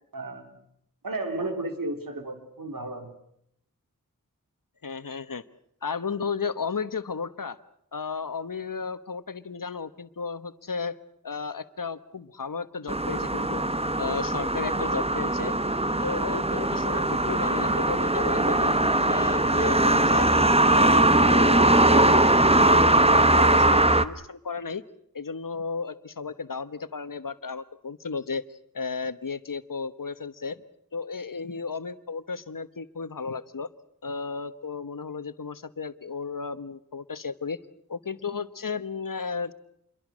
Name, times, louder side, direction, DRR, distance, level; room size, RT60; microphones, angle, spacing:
voice 1, 0.1-0.5 1.0-3.1, right 2 dB, 75° right, 6 dB, 3.5 m, -33 dB
voice 2, 4.8-5.4 5.8-7.6 7.9-11.0 11.2-13.6 14.0-15.5 16.0-18.7 19.1-20.3 20.6-24.8 25.1-30.6 30.9-33.7 34.0-37.6 37.9-39.5, left 5 dB, 75° left, 12 dB, 1.3 m, -34 dB
sound 1, 12.9-24.0, right 1 dB, 20° right, 1.2 m, -21 dB
28.0 x 23.0 x 6.3 m, 0.74 s
wide cardioid pair, 60°, 34 cm